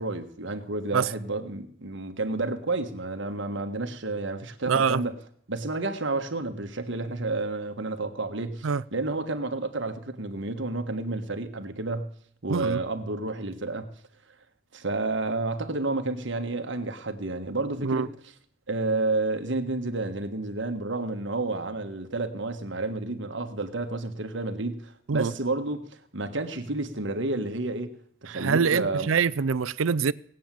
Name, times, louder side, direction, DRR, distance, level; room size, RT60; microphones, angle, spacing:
voice 1, 0.0-5.2 5.5-12.1 12.4-13.9 14.7-18.3 18.7-25.8 26.1-27.9 28.2-29.1, right 2 dB, 60° right, 1.5 m, -30 dB
voice 2, 4.7-5.0 8.6-8.8 12.5-12.8 17.8-18.1 25.1-25.3 28.3-30.1, right 6 dB, 80° right, 0.5 m, -24 dB
18.5 x 8.7 x 7.6 m
head